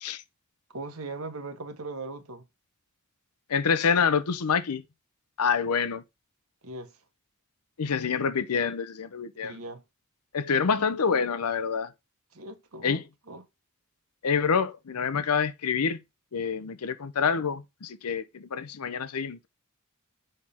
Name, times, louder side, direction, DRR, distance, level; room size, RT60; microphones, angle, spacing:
voice 1, 0.7-2.4 6.6-6.9 9.4-9.8 12.3-13.5, right 2 dB, 70° right, 1.2 m, -39 dB
voice 2, 3.5-4.8 5.4-6.0 7.8-9.6 10.3-11.9 12.8-13.0 14.2-16.0 16.3-19.5, left 6 dB, 90° left, 0.7 m, -27 dB
6.6 x 4.5 x 3.5 m
head